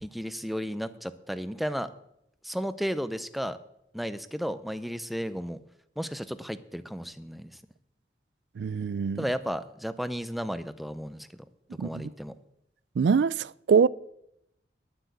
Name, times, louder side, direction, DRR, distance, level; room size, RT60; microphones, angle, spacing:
voice 1, 0.0-1.9 2.4-3.6 3.9-5.6 6.0-7.6 9.2-11.3 11.8-12.4, equal, ahead, 0.5 m, -33 dB
voice 2, 8.6-9.2 11.8-12.1 13.0-13.9, right 6 dB, 80° right, 0.3 m, -24 dB
11.5 x 7.7 x 8.2 m
head